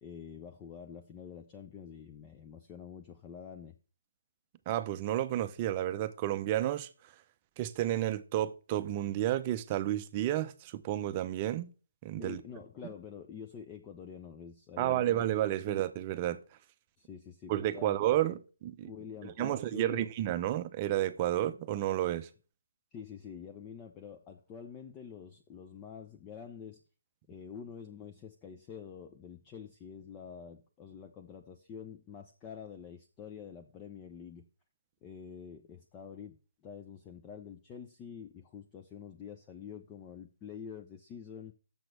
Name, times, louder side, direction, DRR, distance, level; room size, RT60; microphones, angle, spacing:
voice 1, 0.0-3.8 12.2-15.3 15.7-15.8 17.0-18.0 18.8-20.1 22.9-26.8 27.3-34.4 35.0-41.5, left 7 dB, 20° left, 0.7 m, -47 dB
voice 2, 4.7-6.9 7.6-11.7 12.0-12.4 14.8-16.4 17.5-18.9 19.2-22.3, right 13 dB, 25° right, 0.6 m, -31 dB
7.0 x 6.0 x 6.6 m
hypercardioid pair, 150°, 0 cm